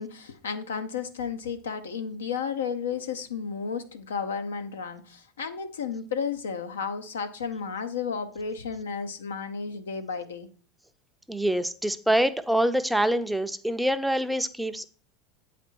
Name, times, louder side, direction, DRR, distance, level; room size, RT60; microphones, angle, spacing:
voice 1, 0.0-10.5, left 6 dB, 85° left, 0.7 m, -33 dB
voice 2, 11.3-14.9, right 1 dB, 5° right, 0.5 m, -25 dB
8.1 x 4.2 x 4.5 m
hypercardioid pair, 90°, 0 cm